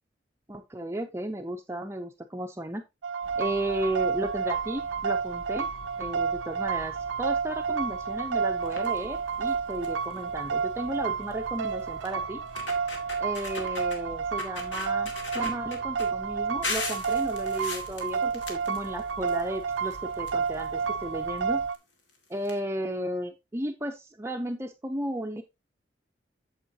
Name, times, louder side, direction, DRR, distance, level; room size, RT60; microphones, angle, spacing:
voice 1, 0.5-2.8 3.4-5.7 6.0-12.4 13.2-21.6 22.3-25.4, right 1 dB, 15° right, 5 dB, 0.5 m, -34 dB
sound 1, 3.0-21.8, right 6 dB, 85° right, 0.5 m, -30 dB
sound 2, 3.2-21.7, left 1 dB, 55° left, 1.5 m, -50 dB
sound 3, 8.6-9.0 9.5-9.6 9.8-10.1 11.3-11.4 12.0-12.1 12.5-14.0 14.4-16.1 16.6-19.4 19.7-20.8 21.7-21.8 22.1-22.2 22.4-22.5, left 3 dB, 75° left, 2.1 m, -37 dB
8.2 x 7.2 x 2.7 m, 0.22 s
head